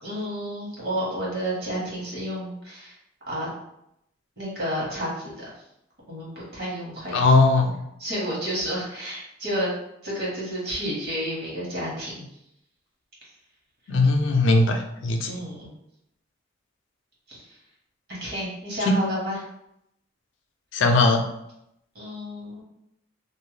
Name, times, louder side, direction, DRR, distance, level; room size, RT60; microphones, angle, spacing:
voice 1, 0.0-2.9 3.3-3.5 4.4-5.4 6.1-7.4 8.0-9.7 10.0-12.2 15.2-15.7 17.3-17.6 18.1-19.4 21.9-22.6, equal, 55° right, -6 dB, 1.2 m, -31 dB
voice 2, 7.1-7.7 13.9-15.4 18.9-19.0 20.7-21.2, left 2 dB, 75° left, 4 dB, 0.4 m, -19 dB
2.6 x 2.1 x 3.1 m, 0.79 s
head